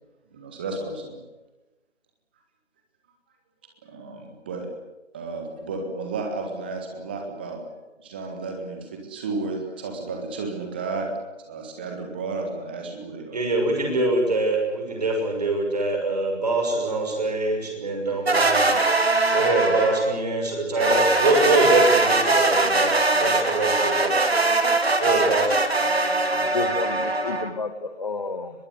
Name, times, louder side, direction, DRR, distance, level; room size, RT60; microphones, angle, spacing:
voice 1, 0.3-1.2 3.8-4.7 5.1-7.6 8.0-11.1 11.4-13.4, right 3 dB, 10° right, 3 dB, 1.6 m, -33 dB
voice 2, 13.3-18.7 19.3-22.9 23.2-24.2 25.0-25.6, right 2 dB, 35° right, 2 dB, 6.2 m, -24 dB
sound 1, 18.3-20.2 20.8-27.5, right 2 dB, 55° right, 3.1 m, -21 dB
voice 3, 26.2-28.5, left 4 dB, 35° left, 11 dB, 1.8 m, -30 dB
23.0 x 21.5 x 8.2 m, 1.1 s
figure-of-eight pair, 160°, 36 cm